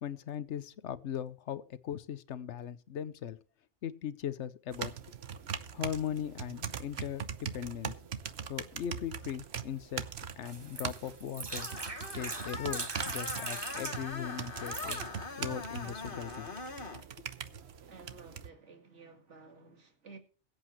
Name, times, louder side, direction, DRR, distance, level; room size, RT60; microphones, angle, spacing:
voice 1, 0.0-3.4 3.8-4.9 5.7-7.9 8.5-10.0 10.4-11.7 12.1-15.1 15.4-16.5 17.5-17.6, left 9 dB, 75° left, 1.1 m, -39 dB
sound 1, 4.7-18.5, right 7 dB, 65° right, 1.1 m, -42 dB
sound 2, 10.5-14.0 14.5-15.0 15.7-16.0, right 3 dB, 25° right, 0.7 m, -40 dB
Screech, 11.5-17.0, left 4 dB, 50° left, 1.6 m, -42 dB
voice 2, 17.9-20.2, right 4 dB, 80° right, 2.4 m, -53 dB
22.0 x 8.3 x 3.1 m
omnidirectional pair, 1.2 m